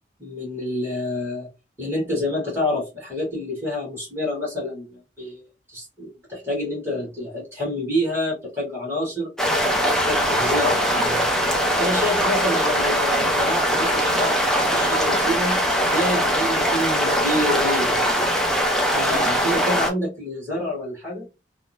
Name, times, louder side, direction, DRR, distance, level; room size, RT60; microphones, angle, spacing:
voice 1, 0.2-1.5 1.8-5.4 5.7-9.3 9.9-11.2 11.8-15.6 15.9-18.1 18.9-21.3, left 1 dB, 15° right, -5 dB, 1.4 m, -28 dB
sound 1, 9.4-19.9, equal, 5° left, 0.5 m, -21 dB
2.8 x 2.1 x 2.6 m, 0.27 s
head